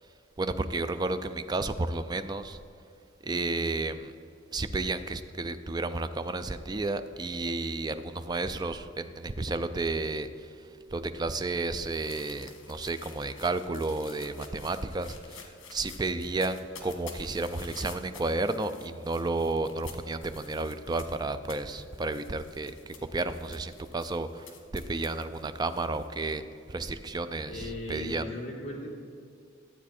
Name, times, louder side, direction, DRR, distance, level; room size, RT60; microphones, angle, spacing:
voice 1, 0.4-2.6 3.2-4.1 4.5-26.4 26.7-28.2, right 2 dB, 20° right, 10 dB, 0.4 m, -32 dB
sound 1, 11.0-26.1, left 6 dB, 80° left, 1.4 m, -51 dB
voice 2, 27.5-28.9, left 1 dB, 35° left, -4 dB, 2.2 m, -37 dB
12.5 x 8.3 x 4.3 m, 2.4 s
head